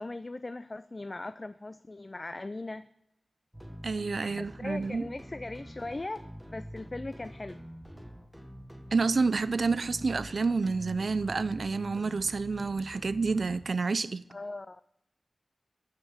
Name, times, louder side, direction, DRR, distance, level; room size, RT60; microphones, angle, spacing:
voice 1, 0.0-2.9 4.2-6.2 6.5-7.6 14.3-14.9, left 2 dB, 35° left, 0.3 m, -39 dB
sound 1, 3.5-13.6, equal, 5° right, 1.2 m, -46 dB
voice 2, 3.8-5.1 8.9-14.2, right 4 dB, 70° right, 0.3 m, -29 dB
7.4 x 6.3 x 7.1 m
wide cardioid pair, 70°, 0 cm